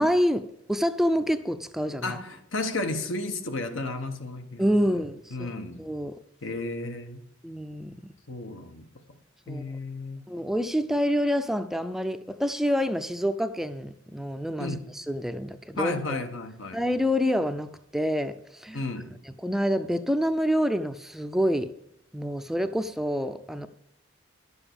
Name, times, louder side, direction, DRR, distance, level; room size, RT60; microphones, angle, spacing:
voice 1, 0.0-2.2 4.6-5.5 5.8-6.2 7.4-8.0 9.5-9.6 10.3-16.2 16.7-18.8 19.4-21.7 22.1-23.7, equal, ahead, 0.4 m, -27 dB
voice 2, 2.0-5.0 5.3-5.8 6.4-7.2 8.3-8.8 9.5-10.2 14.6-14.8 15.8-16.8 18.7-19.1, left 2 dB, 85° left, 1.4 m, -33 dB
11.5 x 7.0 x 7.0 m
head